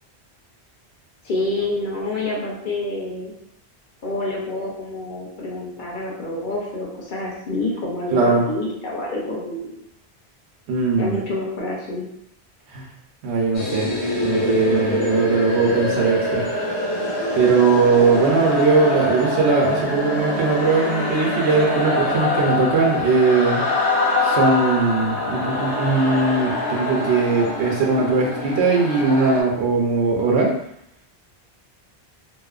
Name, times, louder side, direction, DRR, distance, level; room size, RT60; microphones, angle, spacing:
voice 1, 1.2-3.3 4.0-9.7 11.0-12.1, left 2 dB, 55° left, -4 dB, 0.7 m, -27 dB
voice 2, 8.1-8.5 10.7-11.2 12.7-12.9 13.2-13.9 14.2-16.5 17.3-23.6 24.2-30.6, right 4 dB, 90° right, -1 dB, 0.9 m, -19 dB
sound 1, 13.5-29.4, left 2 dB, 80° left, 0.9 m, -24 dB
2.9 x 2.0 x 2.3 m, 0.78 s
omnidirectional pair, 1.1 m